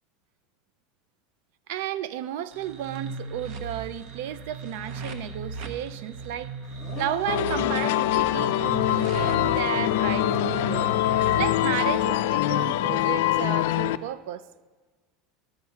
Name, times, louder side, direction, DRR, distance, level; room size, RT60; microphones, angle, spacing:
voice 1, 1.7-6.5 7.0-10.9 11.4-14.4, right 11 dB, 75° right, 0.4 m, -33 dB
sound 1, 2.5-12.0, right 4 dB, 55° right, 0.8 m, -37 dB
Dog, 6.7-11.9, left 11 dB, 55° left, 0.7 m, -35 dB
sound 2, 7.3-14.0, left 13 dB, 80° left, 0.3 m, -24 dB
12.0 x 4.3 x 5.8 m
supercardioid pair, 120°, 0 cm